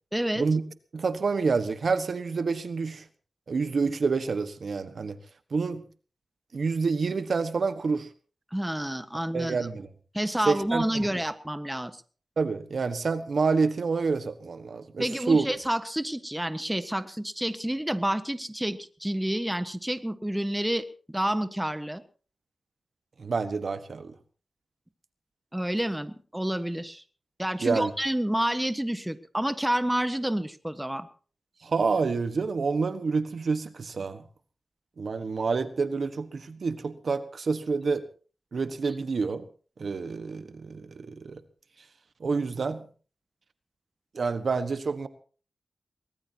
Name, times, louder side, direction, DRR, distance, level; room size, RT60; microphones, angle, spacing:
voice 1, 0.1-0.4 8.5-9.6 10.1-12.0 15.0-22.0 25.5-27.0 27.4-31.1, right 1 dB, 10° right, 11 dB, 1.4 m, -29 dB
voice 2, 0.9-3.0 3.5-5.2 5.5-5.8 6.5-8.1 9.3-9.9 10.5-11.1 12.4-15.5 23.2-24.1 27.6-27.9 31.6-34.2 35.0-38.0 38.5-39.5 39.8-41.4 42.2-42.9 44.1-45.1, right 4 dB, 70° right, 11 dB, 1.4 m, -28 dB
23.0 x 19.5 x 2.9 m, 0.39 s
cardioid pair, 55°, 0 cm